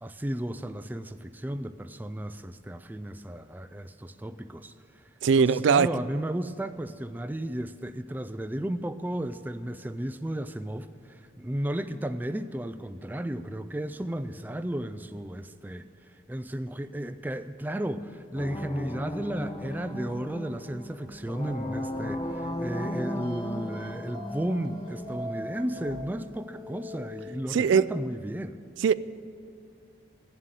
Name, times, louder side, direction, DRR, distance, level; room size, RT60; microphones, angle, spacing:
voice 1, 0.0-5.1 5.4-28.6, right 1 dB, 10° right, 10 dB, 0.3 m, -34 dB
voice 2, 5.2-5.9 27.5-27.8 28.8-28.9, right 6 dB, 85° right, 17 dB, 0.3 m, -20 dB
sound 1, 18.3-26.0, left 1 dB, 25° left, 0.7 m, -36 dB
sound 2, 22.1-27.3, left 1 dB, 25° right, 1.1 m, -44 dB
16.0 x 7.5 x 9.1 m, 2.4 s
head